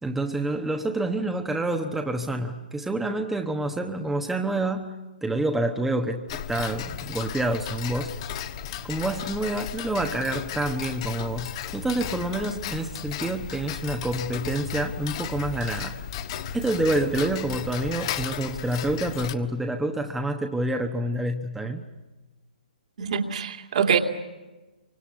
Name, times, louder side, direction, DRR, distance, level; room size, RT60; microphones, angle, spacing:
voice 1, 0.0-8.1 8.8-16.0 16.5-21.9, right 1 dB, 5° right, 4 dB, 1.1 m, -28 dB
Tick-tock, 6.3-19.3, left 9 dB, 35° left, 1.3 m, -35 dB
voice 2, 23.0-24.0, right 7 dB, 50° right, 5 dB, 2.6 m, -24 dB
28.5 x 24.5 x 8.3 m, 1.2 s
figure-of-eight pair, 130°, 5 cm